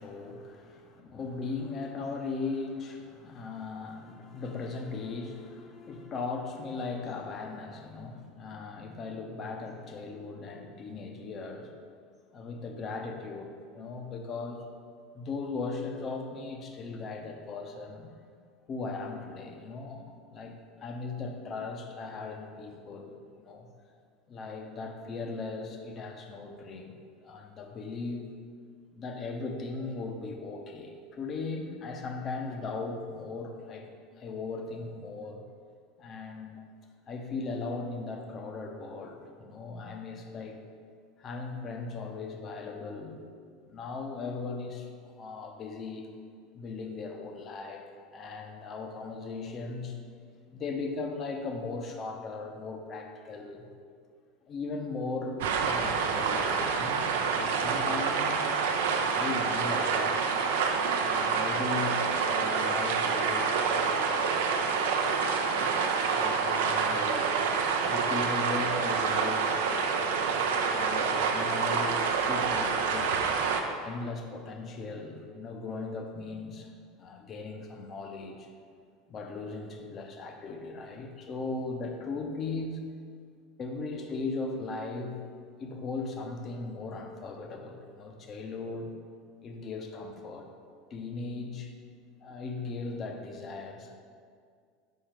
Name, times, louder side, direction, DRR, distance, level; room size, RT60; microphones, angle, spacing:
voice 1, 0.0-11.7 12.3-14.7 15.1-18.1 18.7-20.5 20.8-23.7 24.3-28.3 28.9-33.9 34.2-35.4 36.0-36.6 37.1-40.6 41.2-43.2 43.7-44.9 45.2-46.1 46.5-47.8 48.1-50.0 50.5-53.7 54.5-55.4 55.7-58.5 59.1-60.7 61.0-65.0 65.4-65.7 66.2-67.3 67.9-73.1 73.8-76.7 77.0-78.5 79.1-82.8 83.6-85.2 85.6-88.9 89.4-90.5 90.9-91.7 92.2-94.0, left 3 dB, 35° left, 4 dB, 0.8 m, -38 dB
sound 1, 55.4-73.6, right 5 dB, 65° right, 0.5 m, -27 dB
6.4 x 5.4 x 3.3 m, 2.1 s
figure-of-eight pair, 75°, 0 cm